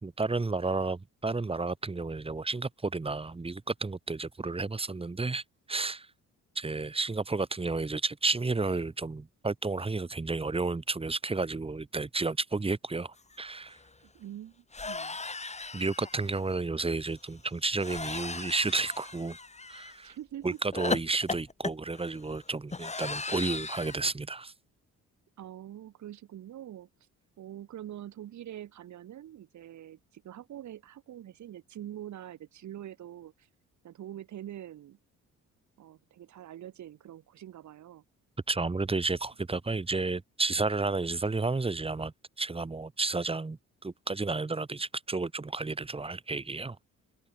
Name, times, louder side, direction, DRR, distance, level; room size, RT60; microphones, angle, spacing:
voice 1, 0.0-6.1 6.6-13.8 15.7-19.4 19.7-20.2 20.4-24.5 38.5-46.8, right 3 dB, 20° right, 1.9 m, -32 dB
sound 1, 13.3-13.4 13.7-13.9 14.7-16.4 17.8-20.0 20.7-24.0, left 3 dB, 20° left, 3.5 m, -36 dB
voice 2, 14.0-15.2 20.0-20.6 25.4-26.9 27.4-33.5 33.8-35.0 35.8-38.0, right 11 dB, 70° right, 2.7 m, -44 dB
open air
cardioid pair, 90°, 30 cm